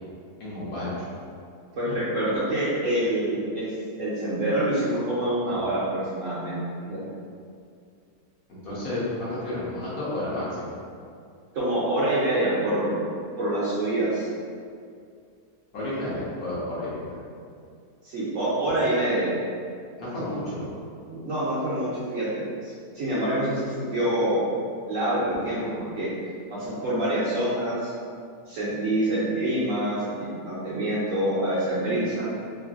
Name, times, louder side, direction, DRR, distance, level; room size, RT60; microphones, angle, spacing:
voice 1, 0.4-0.9 5.4-5.6 8.6-10.7 15.7-17.2 20.0-20.7, left 1 dB, 65° left, -9 dB, 1.2 m, -31 dB
voice 2, 1.8-3.7 4.0-6.6 6.8-7.0 11.5-13.0 13.4-14.3 18.0-19.3 21.1-24.4 24.9-26.1 26.5-27.9 28.5-30.1 30.4-32.2, right 1 dB, 65° right, -9 dB, 0.9 m, -26 dB
3.1 x 2.6 x 2.4 m, 2.3 s
omnidirectional pair, 1.8 m